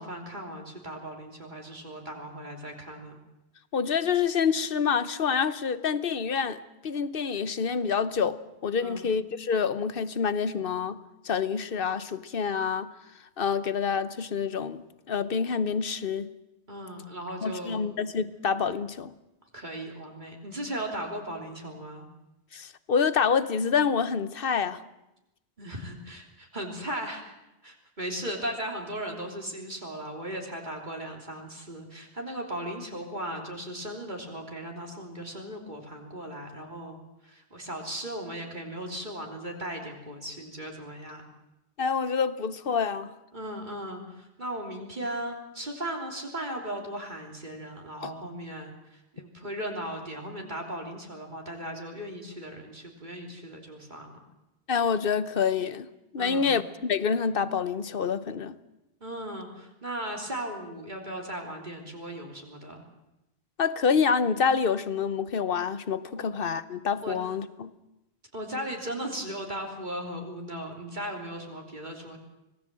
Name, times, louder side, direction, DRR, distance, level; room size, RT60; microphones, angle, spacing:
voice 1, 0.0-3.2 8.8-9.1 16.7-17.8 19.5-22.1 25.6-27.2 27.6-41.3 43.3-54.1 56.2-56.6 59.0-62.8 66.1-66.3 67.0-67.2 68.3-72.2, right 1 dB, 45° right, 1 dB, 3.5 m, -37 dB
voice 2, 3.7-6.6 6.8-11.0 11.2-12.9 13.4-16.3 17.4-19.1 22.5-24.8 41.8-43.1 48.0-48.1 54.7-55.9 56.1-58.6 63.6-67.7, left 6 dB, 60° left, 14 dB, 1.1 m, -27 dB
25.5 x 18.5 x 7.6 m, 0.93 s
omnidirectional pair, 1.1 m